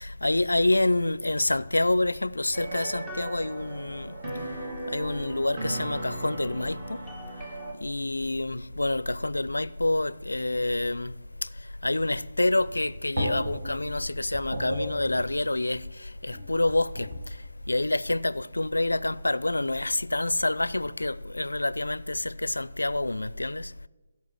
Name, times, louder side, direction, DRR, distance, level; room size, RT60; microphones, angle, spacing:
voice 1, 0.0-4.1 4.9-7.0 7.8-11.1 11.8-17.1 17.7-23.7, left 2 dB, 75° left, 0.4 m, -27 dB
sound 1, 2.5-7.7, right 2 dB, 20° right, 1.8 m, -37 dB
sound 2, 12.6-17.7, equal, 45° right, 4.4 m, -36 dB
16.0 x 5.7 x 7.5 m
figure-of-eight pair, 145°, 0 cm